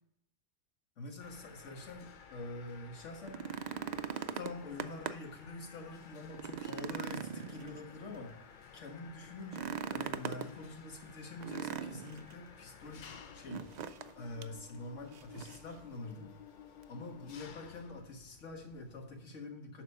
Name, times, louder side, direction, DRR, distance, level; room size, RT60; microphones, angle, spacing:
voice 1, 1.0-3.4 4.3-8.4 8.7-13.7 14.1-16.3 16.9-19.8, left 2 dB, 75° left, 3 dB, 1.7 m, -46 dB
Mechanisms, 1.2-19.2, left 7 dB, 50° left, 0.6 m, -55 dB
sound 1, 3.1-5.4 5.8-5.9 6.3-8.2 9.4-10.5 11.4-12.3 13.5-14.1 14.4-14.5 15.1-15.7 16.8-16.9, right 7 dB, 75° right, 0.4 m, -40 dB
11.0 x 4.3 x 5.4 m, 0.77 s
omnidirectional pair, 1.3 m